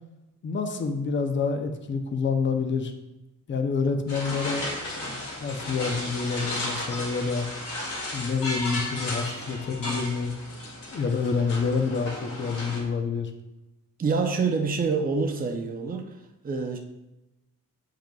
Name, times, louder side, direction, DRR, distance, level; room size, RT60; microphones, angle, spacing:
voice 1, 0.4-2.9 3.5-7.5 8.1-10.3 10.9-13.3, left 5 dB, 35° left, 6 dB, 0.6 m, -28 dB
sound 1, 4.1-12.8, left 1 dB, 70° left, 2.0 m, -34 dB
voice 2, 14.0-16.2 16.4-16.8, right 4 dB, 25° right, 3 dB, 0.6 m, -26 dB
9.1 x 4.9 x 2.3 m, 0.96 s
wide cardioid pair, 155°, 33 cm